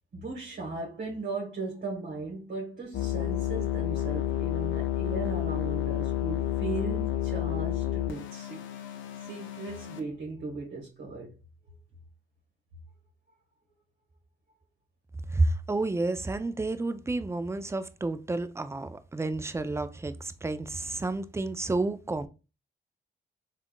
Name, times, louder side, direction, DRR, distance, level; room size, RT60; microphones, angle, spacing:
voice 1, 0.1-8.6 9.2-11.4, right 3 dB, 55° right, 1.2 m, -37 dB
sound 1, 2.9-10.0, left 12 dB, 75° left, 0.5 m, -30 dB
voice 2, 15.3-22.3, right 2 dB, 15° right, 0.4 m, -30 dB
3.5 x 2.4 x 2.2 m
supercardioid pair, 55°, 20 cm